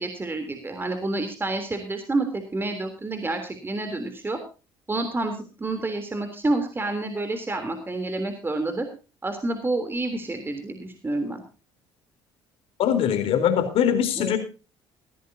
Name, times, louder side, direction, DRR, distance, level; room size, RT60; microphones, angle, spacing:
voice 1, 0.0-4.4 4.9-8.9 9.2-11.4 14.2-14.3, right 2 dB, 20° right, 6 dB, 3.4 m, -29 dB
voice 2, 12.8-14.4, left 9 dB, 65° left, 8 dB, 4.0 m, -22 dB
19.0 x 14.5 x 2.8 m, 0.32 s
supercardioid pair, 75°, 11 cm